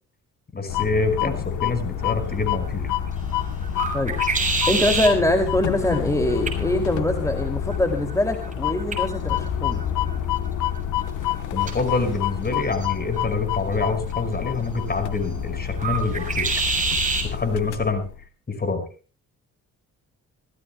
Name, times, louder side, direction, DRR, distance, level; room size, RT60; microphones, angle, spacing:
voice 1, 0.5-2.9 11.5-16.5 17.3-18.1 18.5-18.8, left 3 dB, 30° left, 8 dB, 5.2 m, -26 dB
sound 1, 0.7-18.2, left 11 dB, 75° left, 1.1 m, -28 dB
sound 2, 2.0-17.3, right 3 dB, 25° right, 6.8 m, -30 dB
voice 2, 4.7-9.8, left 1 dB, 10° left, 4 dB, 2.5 m, -23 dB
26.5 x 16.0 x 2.2 m, 0.36 s
cardioid pair, 90°, 30 cm